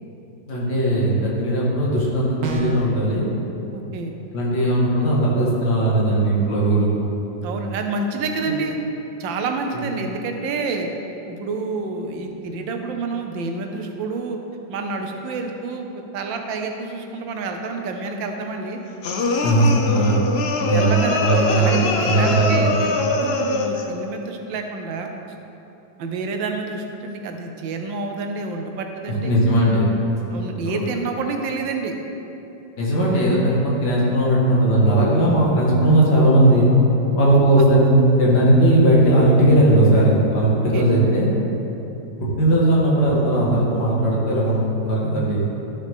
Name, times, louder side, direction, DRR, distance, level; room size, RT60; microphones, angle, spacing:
voice 1, 0.5-3.2 4.3-6.9 9.7-9.8 19.4-20.2 20.6-21.8 22.0-22.7 29.2-29.9 30.7-30.8 32.8-36.7 37.1-41.3 42.2-45.5, right 1 dB, 65° left, -5 dB, 2.4 m, -18 dB
sound 1, 2.4-3.0, right 2 dB, 60° right, 1.3 m, -28 dB
voice 2, 3.7-4.1 7.4-8.8 9.2-10.9 11.3-14.4 14.7-18.8 20.7-25.1 26.0-29.3 30.3-31.9 37.3-37.6 40.7-40.8, right 3 dB, 90° right, 4 dB, 1.6 m, -28 dB
sound 2, 19.0-23.9, left 3 dB, 85° left, 0.5 m, -23 dB
12.5 x 6.5 x 3.6 m, 3.0 s
omnidirectional pair, 2.0 m